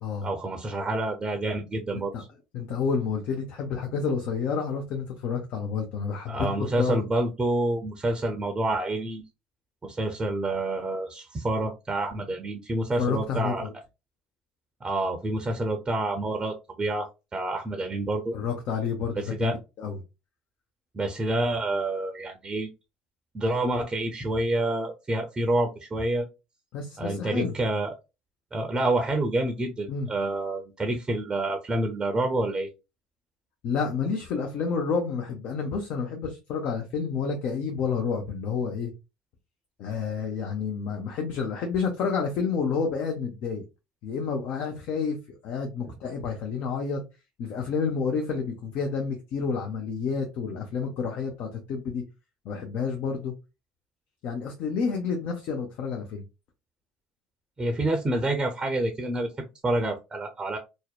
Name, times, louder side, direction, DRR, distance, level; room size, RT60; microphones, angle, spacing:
voice 1, 0.2-2.3 6.3-9.2 9.8-13.7 14.8-18.3 19.2-19.6 20.9-22.7 23.3-26.3 27.0-27.9 28.5-32.7 57.6-60.6, right 2 dB, 25° right, 0.5 m, -28 dB
voice 2, 2.5-7.0 13.0-13.7 18.3-19.5 19.8-20.0 26.7-27.5 29.9-30.1 33.6-38.9 39.8-43.7 44.0-45.2 45.4-47.0 47.4-52.0 52.4-53.3 54.2-56.2, left 5 dB, 60° left, 0.5 m, -29 dB
2.7 x 2.0 x 2.3 m
hypercardioid pair, 65°, 3 cm